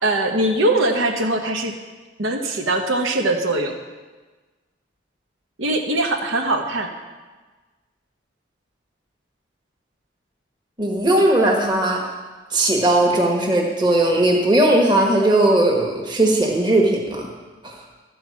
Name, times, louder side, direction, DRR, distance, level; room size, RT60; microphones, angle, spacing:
voice 1, 0.0-1.8 2.2-3.7 5.6-6.9, right 2 dB, 80° right, 3 dB, 1.0 m, -21 dB
voice 2, 10.8-12.0 12.5-17.3 17.6-17.8, right 1 dB, 20° right, 0 dB, 1.3 m, -18 dB
12.5 x 4.8 x 7.4 m, 1.3 s
head